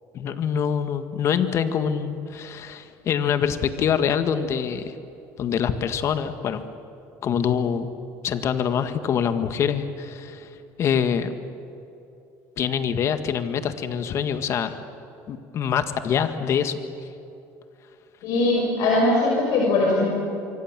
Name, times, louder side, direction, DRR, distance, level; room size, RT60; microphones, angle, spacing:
voice 1, 0.1-4.9 5.4-6.6 7.2-7.9 8.2-10.5 10.8-11.3 12.6-14.8 15.3-16.8, left 8 dB, 50° left, 9 dB, 1.8 m, -25 dB
voice 2, 18.2-20.1, left 2 dB, 65° left, -2 dB, 5.8 m, -20 dB
26.5 x 24.0 x 7.6 m, 2.9 s
cardioid pair, 115°, 6 cm